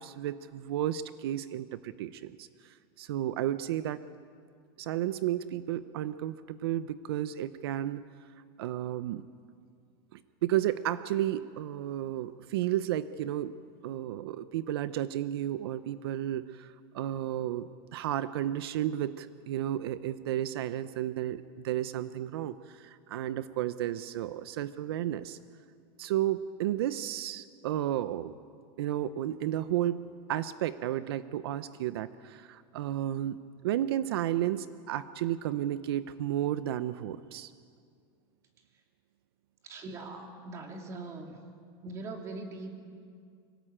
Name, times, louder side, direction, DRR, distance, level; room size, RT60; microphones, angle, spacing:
voice 1, 0.0-4.0 4.8-8.0 8.6-9.2 10.1-13.6 13.8-25.4 26.0-28.3 28.8-37.5, right 12 dB, 80° right, 14 dB, 0.7 m, -32 dB
voice 2, 39.6-41.4 41.8-42.7, right 3 dB, 25° right, 3 dB, 2.5 m, -41 dB
24.5 x 17.5 x 8.9 m, 2.2 s
supercardioid pair, 175°, 13 cm